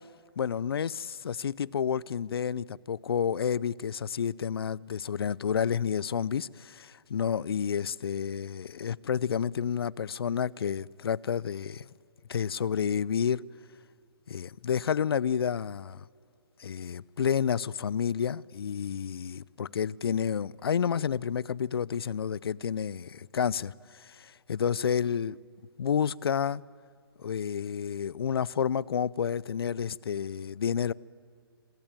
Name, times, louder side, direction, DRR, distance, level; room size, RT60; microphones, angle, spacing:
voice 1, 0.4-11.9 12.3-13.4 14.3-16.0 16.6-25.4 25.8-26.6 27.2-30.9, left 7 dB, 70° left, 0.6 m, -30 dB
26.5 x 23.0 x 9.1 m
hypercardioid pair, 165°, 13 cm